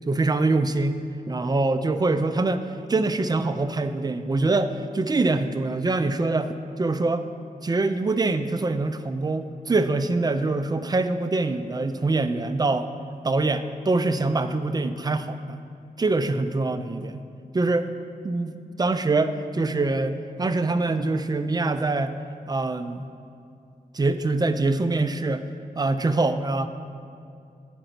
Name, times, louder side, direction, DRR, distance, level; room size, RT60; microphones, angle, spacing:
voice 1, 0.1-1.0 1.3-7.2 7.6-15.6 16.0-17.2 17.5-17.9 18.2-18.5 18.8-22.1 22.5-23.1 23.9-25.4 25.8-26.7, right 3 dB, 25° right, 10 dB, 0.4 m, -24 dB
8.0 x 5.0 x 5.7 m, 2.5 s
wide cardioid pair, 90°, 15 cm